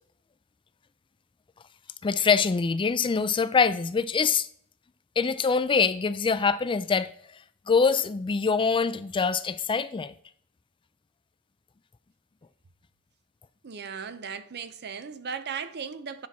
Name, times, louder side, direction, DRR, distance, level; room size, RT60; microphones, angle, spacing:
voice 1, 2.0-4.5 5.2-7.1 7.7-10.1, left 5 dB, 25° left, 0.4 m, -24 dB
voice 2, 13.6-16.3, right 6 dB, 50° right, 0.6 m, -37 dB
9.5 x 5.9 x 4.1 m
head